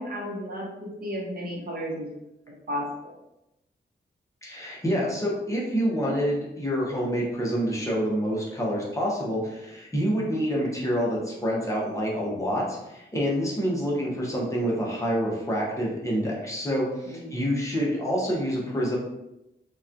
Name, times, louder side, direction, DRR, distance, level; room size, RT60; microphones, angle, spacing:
voice 1, 0.0-2.1 2.7-3.1 17.0-17.3, equal, 50° right, -3 dB, 0.8 m, -33 dB
voice 2, 4.4-19.0, equal, 15° left, -4 dB, 0.7 m, -27 dB
2.9 x 2.2 x 2.4 m, 0.89 s
wide cardioid pair, 120°, 19 cm